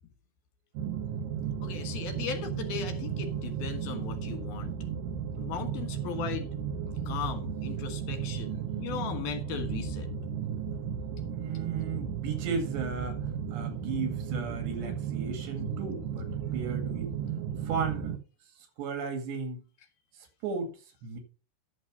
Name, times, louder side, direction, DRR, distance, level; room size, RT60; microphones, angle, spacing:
sound 1, 0.7-18.2, right 7 dB, 65° right, 2.4 m, -34 dB
voice 1, 1.6-4.7 5.4-6.5 7.1-10.1, left 8 dB, 70° left, 3.1 m, -37 dB
voice 2, 11.3-17.1 17.6-18.2 18.8-19.6 20.4-21.2, right 5 dB, 85° right, 4.4 m, -35 dB
11.5 x 6.4 x 5.4 m
omnidirectional pair, 4.9 m